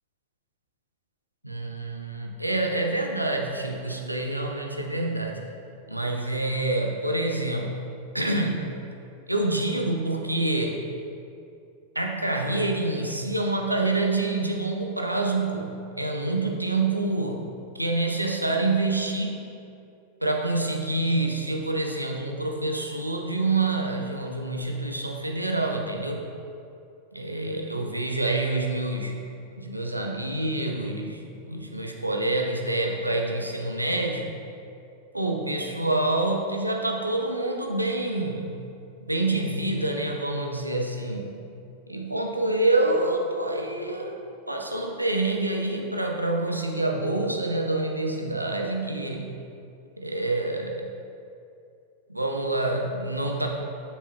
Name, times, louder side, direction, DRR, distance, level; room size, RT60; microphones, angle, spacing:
voice 1, 1.4-5.4 5.9-7.9 8.1-8.8 9.3-10.8 11.9-17.5 17.8-19.5 20.2-26.2 27.1-29.2 29.6-34.4 35.1-38.6 39.1-41.4 41.9-49.4 50.0-50.9 52.1-53.5, right 2 dB, 85° right, 1 dB, 0.7 m, -27 dB
7.4 x 6.9 x 2.7 m, 2.6 s
figure-of-eight pair, 90°, 0 cm